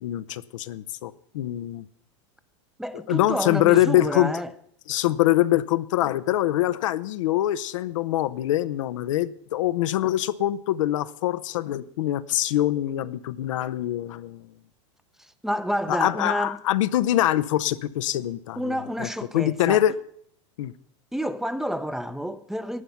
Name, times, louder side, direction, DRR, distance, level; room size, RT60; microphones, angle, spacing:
voice 1, 0.0-1.9 3.1-4.3 4.9-14.5 15.9-19.1 19.3-19.9 20.6-20.7, left 14 dB, 80° left, 0.6 m, -24 dB
voice 2, 2.8-4.5 15.2-16.6 18.6-19.8 21.1-22.8, equal, 5° right, 0.5 m, -29 dB
11.0 x 9.2 x 5.7 m
supercardioid pair, 120°, 16 cm